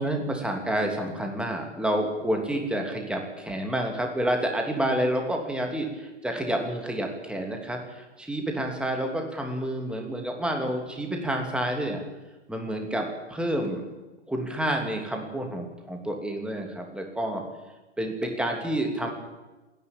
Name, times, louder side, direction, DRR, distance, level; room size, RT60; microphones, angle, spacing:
voice 1, 0.0-12.0 12.5-13.9 14.3-17.4 18.0-19.1, right 1 dB, 5° right, 2 dB, 2.8 m, -29 dB
27.0 x 11.0 x 8.9 m, 1.1 s
hypercardioid pair, 125°, 36 cm